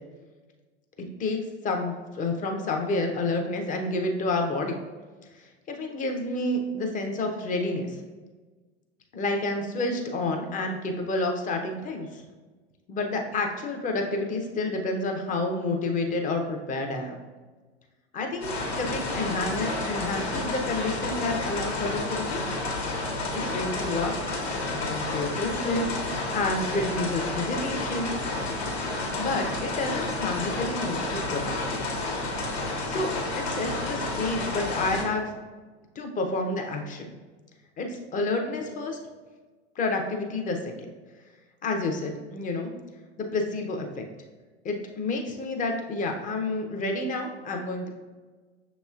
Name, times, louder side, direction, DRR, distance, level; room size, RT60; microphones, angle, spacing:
voice 1, 1.2-4.8 5.3-8.0 9.1-12.2 12.9-17.1 18.1-22.4 23.3-24.1 24.6-25.9 26.3-28.1 29.2-31.8 32.9-35.3 36.0-37.1 37.8-39.0 39.8-40.7 41.6-42.7 43.2-44.1 44.6-47.9, left 2 dB, 25° left, 3 dB, 0.6 m, -29 dB
sound 1, 18.4-35.0, left 2 dB, 70° left, 1.3 m, -30 dB
6.4 x 3.0 x 2.4 m, 1.3 s
hypercardioid pair, 90°, 33 cm